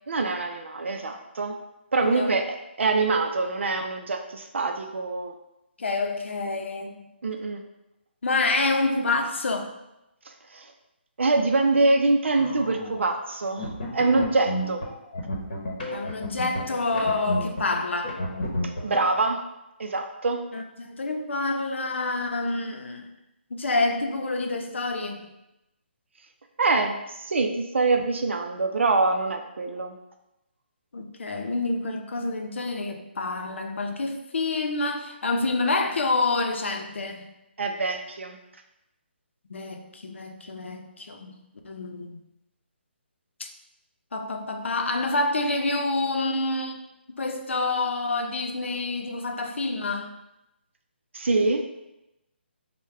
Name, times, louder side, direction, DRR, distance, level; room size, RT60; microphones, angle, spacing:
voice 1, 0.1-1.5 1.9-5.3 7.2-7.6 10.3-10.7 11.2-14.8 18.8-19.4 19.8-20.4 26.6-30.0 37.6-38.4 51.1-51.7, right 3 dB, 85° right, 4 dB, 0.4 m, -25 dB
voice 2, 2.0-2.3 5.8-7.1 8.2-9.7 15.9-18.2 20.5-23.1 23.5-25.3 30.9-37.3 39.5-42.2 43.4-43.5 44.1-46.8 47.2-50.1, left 3 dB, 80° left, 4 dB, 0.6 m, -28 dB
sound 1, 12.3-13.1 13.6-17.7 18.0-19.0, left 1 dB, 45° left, 0.9 m, -31 dB
4.7 x 2.2 x 3.3 m, 0.92 s
hypercardioid pair, 175°, 6 cm